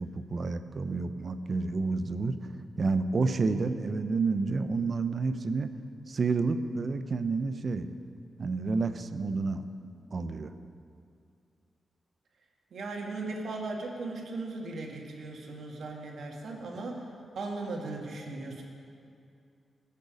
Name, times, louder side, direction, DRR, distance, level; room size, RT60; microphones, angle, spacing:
voice 1, 0.0-2.3 2.8-5.7 6.1-7.9 8.4-9.6 10.1-10.5, right 4 dB, 45° right, 10 dB, 0.6 m, -29 dB
voice 2, 12.7-17.0 17.4-18.6, right 3 dB, 70° right, 0 dB, 1.9 m, -37 dB
19.5 x 6.8 x 5.2 m, 2.5 s
cardioid pair, 105°, 0 cm